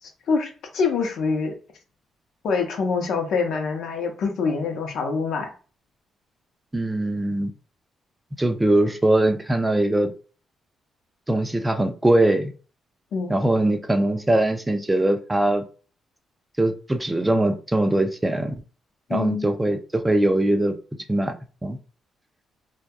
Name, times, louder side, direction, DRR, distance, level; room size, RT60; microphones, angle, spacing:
voice 1, 0.0-1.5 2.4-5.5 13.1-13.3 19.1-19.5, left 4 dB, 70° left, 0.7 m, -25 dB
voice 2, 6.7-7.5 8.4-10.1 11.3-12.5 13.3-15.6 16.6-18.6 19.1-20.8 21.1-21.3 21.6-21.8, right 1 dB, 10° right, 0.3 m, -21 dB
2.7 x 2.3 x 2.2 m
cardioid pair, 140°, 0 cm